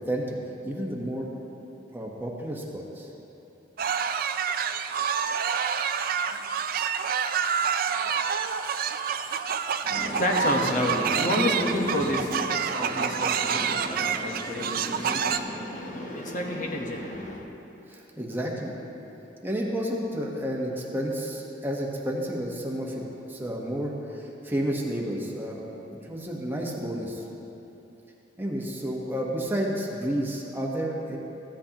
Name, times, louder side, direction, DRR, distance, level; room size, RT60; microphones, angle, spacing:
voice 1, 0.6-1.3 1.9-3.1 17.9-18.7 19.4-27.2 28.4-31.2, equal, 10° right, -2 dB, 1.1 m, -31 dB
sound 1, 3.8-15.4, right 7 dB, 55° right, 0.4 m, -28 dB
voice 2, 9.8-17.5, left 1 dB, 45° left, 0 dB, 1.1 m, -29 dB
15.0 x 10.5 x 2.9 m, 3.0 s
head